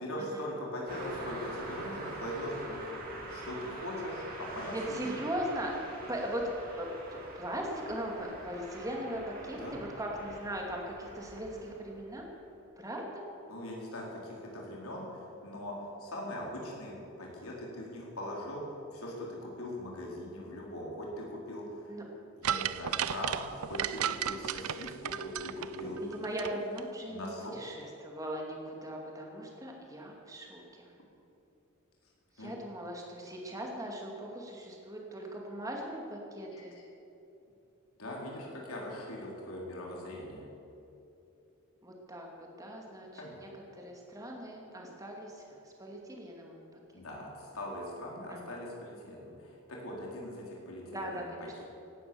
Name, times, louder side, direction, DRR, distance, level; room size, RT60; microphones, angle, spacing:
voice 1, 0.0-2.9 3.3-5.2 9.6-9.8 13.5-15.7 16.0-18.6 18.9-21.9 22.4-26.1 27.1-27.6 32.4-32.5 36.5-36.8 38.0-40.4 43.2-43.4 46.9-51.6, left 1 dB, 75° left, -3 dB, 4.2 m, -41 dB
Car passing by, 0.9-12.3, right 1 dB, 40° right, 3.1 m, -44 dB
voice 2, 4.7-5.7 6.1-6.4 6.8-6.9 7.3-12.2 12.8-13.2 21.9-22.0 26.0-30.9 32.4-36.7 41.8-42.3 42.6-43.5 43.8-46.8 48.3-48.6 50.9-51.5, right 1 dB, 15° right, 0 dB, 2.4 m, -39 dB
sound 1, 22.4-26.5 26.8-26.9, right 9 dB, 80° right, 0.5 m, -34 dB
17.5 x 11.5 x 7.0 m, 2.8 s
head